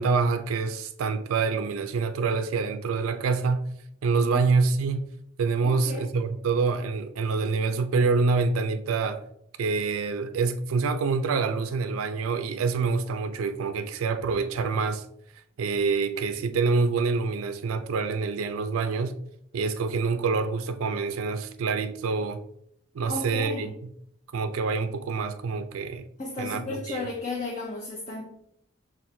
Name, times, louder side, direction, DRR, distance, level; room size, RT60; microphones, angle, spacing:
voice 1, 0.0-3.7 4.0-5.1 5.4-9.2 9.6-15.0 15.6-19.1 19.5-22.4 22.9-23.7 24.3-26.1 26.4-27.1, right 4 dB, 85° right, 0.4 m, -26 dB
voice 2, 4.1-4.4 5.6-6.1 23.1-23.8 26.2-28.2, left 2 dB, 35° left, 0.6 m, -34 dB
5.7 x 2.5 x 2.6 m
head